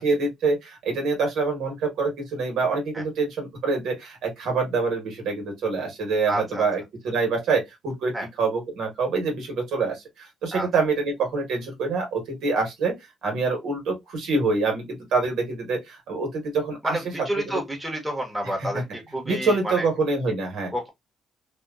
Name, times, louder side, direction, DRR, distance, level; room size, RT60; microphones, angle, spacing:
voice 1, 0.0-12.9 13.2-17.6 18.4-18.8 19.2-20.7, right 4 dB, 80° right, 1.1 m, -26 dB
voice 2, 6.3-6.6 8.1-8.3 10.5-10.7 16.8-19.8 20.7-20.9, right 1 dB, 5° right, 1.0 m, -29 dB
2.8 x 2.2 x 2.3 m
cardioid pair, 90°, 0 cm